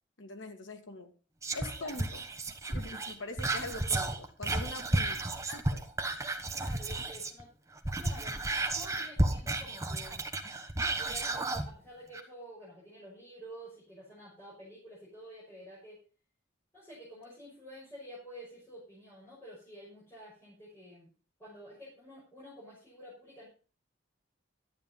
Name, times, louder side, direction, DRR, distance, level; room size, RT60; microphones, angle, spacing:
voice 1, 0.2-1.1 1.5-2.2 2.7-5.2 5.5-5.8, left 2 dB, 85° left, 5 dB, 2.1 m, -43 dB
Whispering, 1.4-7.4 7.7-11.7 12.1-12.2, right 2 dB, 15° right, 1.2 m, -33 dB
voice 2, 4.5-4.9 6.6-7.5 8.0-10.2 11.0-16.0 16.7-21.1 21.4-23.5, equal, 15° left, -8 dB, 5.8 m, -50 dB
12.0 x 9.3 x 5.4 m, 0.38 s
head